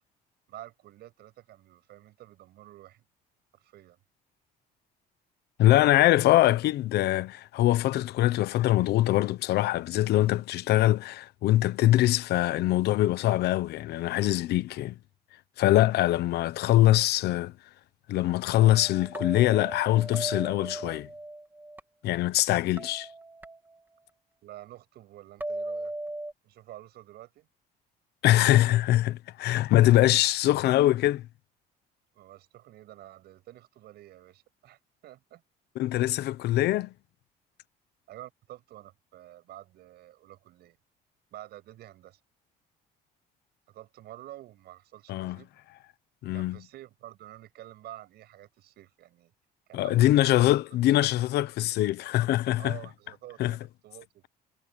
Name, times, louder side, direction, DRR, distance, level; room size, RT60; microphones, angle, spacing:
voice 1, 0.5-3.0 3.5-4.0 16.8-17.1 24.4-25.9 26.4-27.5 32.1-35.4 38.1-40.8 41.3-42.2 43.7-45.5 46.3-49.3 49.7-50.4 50.7-51.1 52.6-54.3, right 14 dB, 75° right, 7.7 m, -49 dB
voice 2, 5.6-14.9 15.6-17.5 18.1-21.1 22.0-23.1 28.2-31.2 35.8-36.9 45.1-45.4 46.2-46.6 49.7-52.8 53.4-53.6, left 15 dB, 75° left, 1.0 m, -23 dB
sound 1, 18.5-21.8 22.8-24.0 25.4-26.3, right 1 dB, 10° right, 3.1 m, -38 dB
cardioid pair, 110°, 17 cm